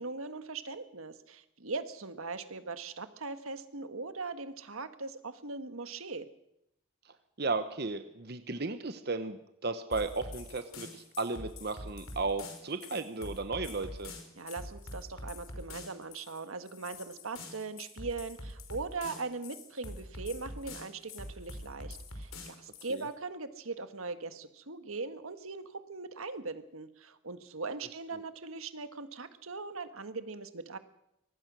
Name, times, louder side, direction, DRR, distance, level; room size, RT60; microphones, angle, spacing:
voice 1, 0.0-6.3 14.3-30.8, right 3 dB, 90° right, 10 dB, 1.6 m, -40 dB
voice 2, 7.4-14.1 22.9-23.1 28.1-28.2, right 3 dB, 50° right, 9 dB, 1.0 m, -35 dB
sound 1, 9.9-23.1, left 2 dB, 85° left, 4.6 m, -45 dB
24.5 x 19.0 x 6.2 m, 0.81 s
head